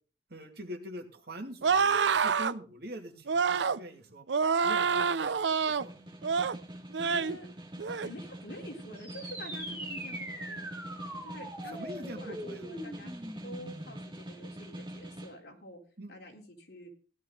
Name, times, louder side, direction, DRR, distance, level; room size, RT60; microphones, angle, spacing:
voice 1, 0.3-5.9 9.7-9.8 11.7-12.6 16.0-16.1, equal, 60° right, 4 dB, 2.5 m, -44 dB
sound 1, 1.6-2.5 3.3-3.8 4.3-5.9 6.2-6.6 6.9-7.4 7.8-8.1, right 5 dB, 80° right, 0.6 m, -27 dB
Snare drum, 5.8-15.4, right 1 dB, 25° right, 2.4 m, -45 dB
voice 2, 7.0-7.5 8.0-10.6 11.2-13.1 13.4-15.8 16.1-16.9, left 1 dB, 65° left, 1 dB, 3.8 m, -47 dB
sound 2, 9.0-14.0, right 1 dB, 10° right, 5.5 m, -42 dB
16.0 x 11.5 x 3.9 m, 0.37 s
head